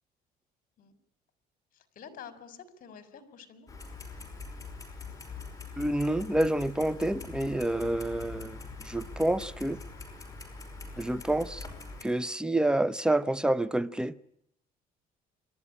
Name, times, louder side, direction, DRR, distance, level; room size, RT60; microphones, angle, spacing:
voice 1, 1.7-3.7 12.0-12.2, left 7 dB, 55° left, 3.7 m, -49 dB
Clock, 3.7-12.0, left 4 dB, 20° left, 5.5 m, -43 dB
voice 2, 5.8-9.8 11.0-11.6 12.0-14.1, right 1 dB, 5° right, 0.9 m, -28 dB
27.5 x 12.5 x 10.0 m
cardioid pair, 110°, 17 cm